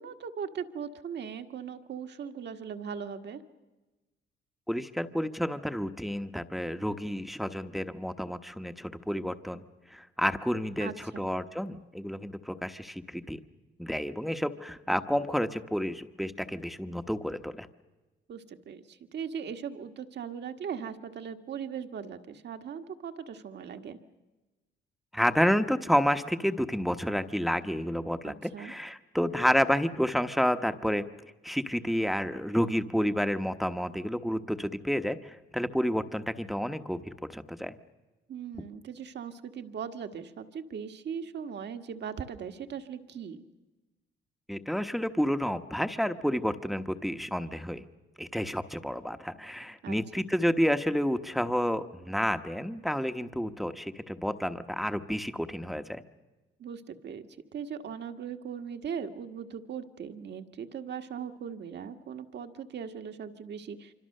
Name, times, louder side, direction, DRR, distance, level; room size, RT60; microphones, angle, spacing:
voice 1, 0.0-3.4 10.8-11.3 18.3-24.0 28.2-28.7 38.3-43.4 49.8-50.3 56.6-63.9, right 7 dB, 60° right, 7 dB, 1.7 m, -39 dB
voice 2, 4.7-9.6 9.9-13.4 13.8-17.7 25.1-31.1 31.4-37.7 44.5-47.8 48.2-56.0, equal, ahead, 9 dB, 1.1 m, -30 dB
25.5 x 25.5 x 6.6 m, 1.2 s
cardioid pair, 90°, 20 cm